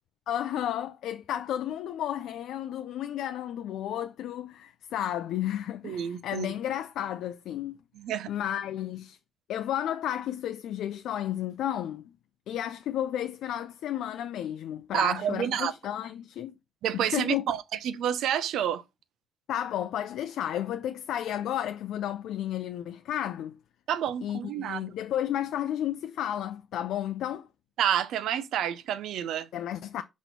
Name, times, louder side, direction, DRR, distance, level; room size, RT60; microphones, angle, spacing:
voice 1, 0.3-7.8 8.3-9.2 9.5-12.1 12.5-16.5 16.9-17.4 19.5-23.6 24.2-27.5 29.5-30.0, left 11 dB, 85° left, 0.4 m, -32 dB
voice 2, 5.8-6.5 8.0-8.3 14.9-15.7 16.8-18.8 23.9-24.9 27.8-29.5, right 10 dB, 85° right, 0.6 m, -29 dB
6.0 x 3.1 x 5.2 m
cardioid pair, 165°, 0 cm